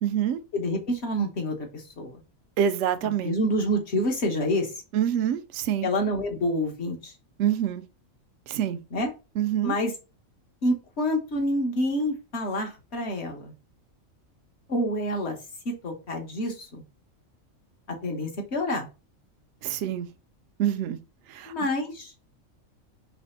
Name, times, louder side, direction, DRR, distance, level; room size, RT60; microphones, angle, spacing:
voice 1, 0.0-0.4 2.6-3.3 4.9-5.9 7.4-7.8 8.5-8.8 9.4-9.7 19.6-20.1 20.6-21.0 21.3-21.5, right 10 dB, 70° right, 0.8 m, -26 dB
voice 2, 0.5-2.2 3.0-4.7 5.8-7.1 8.9-9.1 9.6-9.9 10.6-13.5 14.7-15.4 15.6-16.8 18.0-18.9 21.5-22.1, equal, 55° left, 1.3 m, -28 dB
3.4 x 3.1 x 4.2 m
omnidirectional pair, 1.4 m